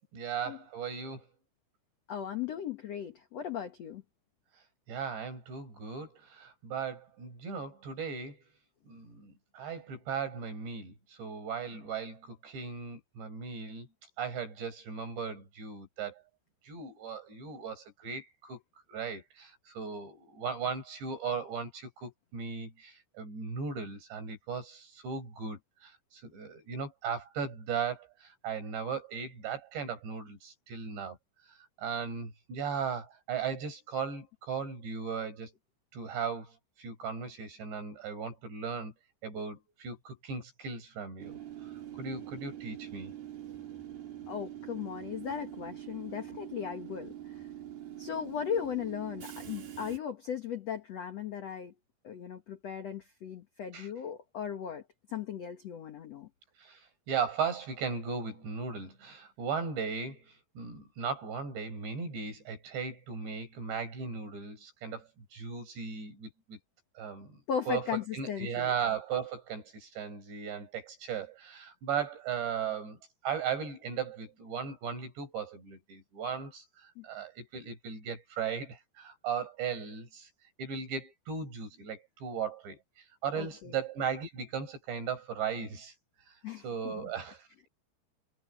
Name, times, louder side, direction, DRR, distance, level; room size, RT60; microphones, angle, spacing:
voice 1, 0.1-1.3 4.9-8.4 8.9-13.9 14.2-16.2 16.6-18.6 18.9-31.2 31.5-35.5 35.9-38.9 39.2-41.4 42.0-43.1 53.7-53.9 56.6-66.6 67.0-67.4 67.7-80.3 80.6-87.7, right 6 dB, 75° right, 9.1 m, -37 dB
voice 2, 2.1-4.0 44.3-47.3 48.0-51.7 52.0-54.8 55.1-56.3 67.5-68.7 77.0-77.1 83.3-83.7 86.4-87.0, left 8 dB, 70° left, 1.5 m, -37 dB
Train / Subway metro underground, 41.2-50.0, right 11 dB, 60° right, 4.2 m, -44 dB
omnidirectional pair, 5.1 m